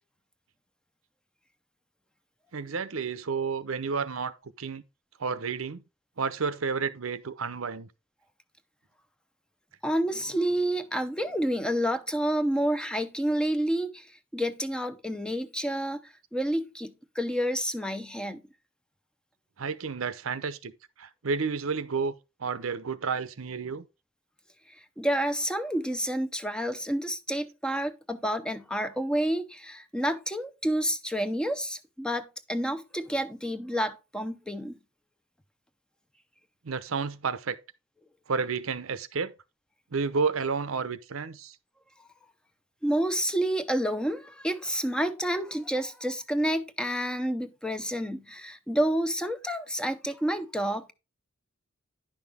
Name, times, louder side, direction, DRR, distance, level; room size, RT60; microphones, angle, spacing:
voice 1, 2.5-4.8 5.2-5.8 6.2-7.9 19.6-20.7 21.0-22.1 22.4-23.9 36.6-37.6 38.3-39.3 39.9-41.5, right 5 dB, 80° right, 0.7 m, -31 dB
voice 2, 9.8-18.4 25.0-34.8 42.8-50.9, equal, 5° left, 0.6 m, -29 dB
10.5 x 5.9 x 3.5 m
head